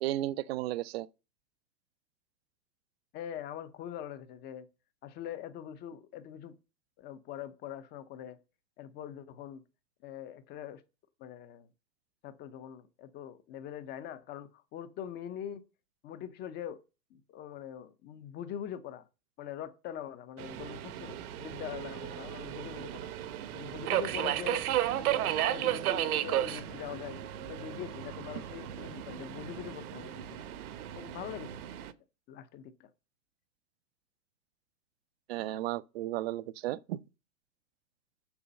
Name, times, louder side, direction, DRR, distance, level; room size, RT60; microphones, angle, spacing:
voice 1, 0.0-1.1 35.3-37.0, right 15 dB, 40° right, 0.5 m, -34 dB
voice 2, 3.1-4.7 5.0-6.5 7.0-8.4 8.8-9.6 10.0-10.8 11.2-11.7 12.2-15.6 16.0-16.8 17.1-19.0 19.4-23.1 23.5-24.6 25.1-30.5 30.9-31.6 32.3-32.9, left 10 dB, 20° left, 0.7 m, -43 dB
Subway metro underground, 20.4-31.9, right 12 dB, 60° right, 0.9 m, -34 dB
7.1 x 6.5 x 5.3 m
hypercardioid pair, 130°, 50 cm